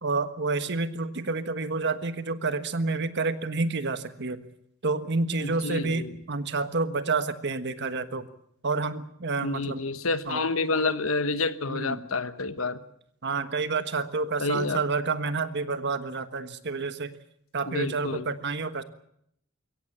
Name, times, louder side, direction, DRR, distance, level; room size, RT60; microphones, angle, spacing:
voice 1, 0.0-4.5 4.8-8.3 8.6-9.9 10.3-10.4 11.7-12.0 13.2-17.1 17.5-18.8, right 3 dB, 55° right, 11 dB, 1.4 m, -29 dB
voice 2, 5.4-6.2 9.4-12.8 14.4-14.8 17.6-18.4, left 3 dB, 80° left, 12 dB, 1.3 m, -29 dB
22.5 x 17.0 x 8.6 m, 0.72 s
head